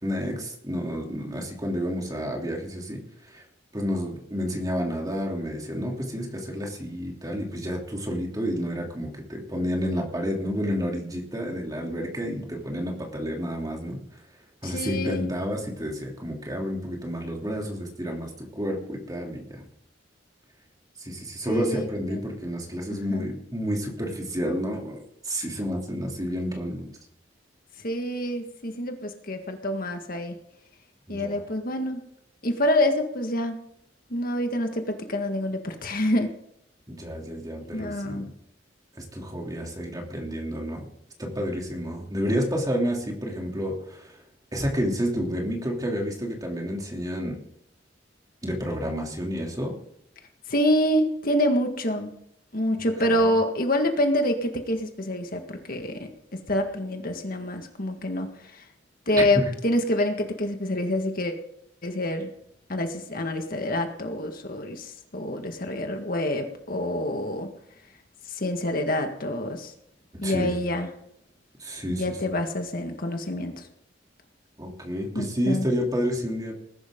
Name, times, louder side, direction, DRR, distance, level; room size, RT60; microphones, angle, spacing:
voice 1, 0.0-3.0 3.3-3.4 3.7-14.0 14.6-19.6 21.0-26.9 31.1-31.4 36.9-38.3 39.0-40.9 41.2-44.2 44.5-47.4 48.4-49.8 53.0-53.3 59.3-59.4 70.2-70.5 71.6-72.2 74.6-76.5, equal, 20° right, 0 dB, 3.1 m, -30 dB
voice 2, 14.6-15.3 21.5-22.2 22.9-23.3 27.8-30.4 31.1-32.0 32.4-33.6 34.1-36.3 37.7-38.3 50.5-52.1 52.5-56.0 56.5-58.7 59.1-61.3 61.8-62.3 62.7-67.5 68.3-69.7 70.2-70.9 71.9-73.7 75.2-75.7, left 1 dB, 50° left, 5 dB, 1.8 m, -27 dB
20.0 x 11.5 x 3.8 m, 0.73 s
head